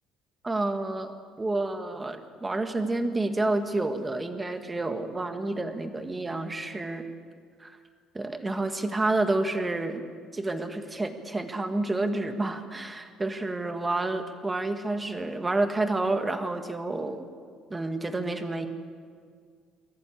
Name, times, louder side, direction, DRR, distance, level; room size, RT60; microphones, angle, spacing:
voice 1, 0.4-1.1 1.4-7.0 7.6-7.7 8.1-10.0 10.3-17.3 17.7-18.7, right 2 dB, 15° right, 7 dB, 1.5 m, -29 dB
23.0 x 14.5 x 8.4 m, 2.1 s
cardioid pair, 150°, 0 cm